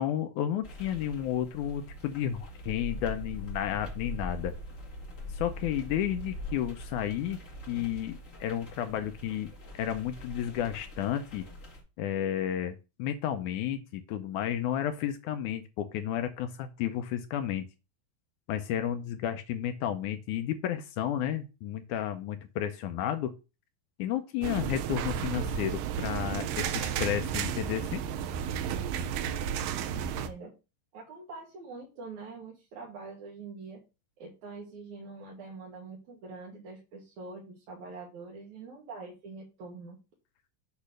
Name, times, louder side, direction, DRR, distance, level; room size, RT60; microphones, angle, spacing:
voice 1, 0.0-4.5 5.3-11.5 12.0-17.7 18.5-23.3 24.0-28.0, left 10 dB, 75° left, 8 dB, 1.9 m, -32 dB
sound 1, 0.6-11.8, left 1 dB, 35° left, 1.3 m, -42 dB
sound 2, 24.4-30.3, right 8 dB, 80° right, 2.4 m, -32 dB
voice 2, 29.5-30.5 30.9-33.8 34.2-40.0, right 4 dB, 65° right, -3 dB, 2.7 m, -45 dB
8.3 x 3.2 x 6.5 m, 0.30 s
omnidirectional pair, 3.9 m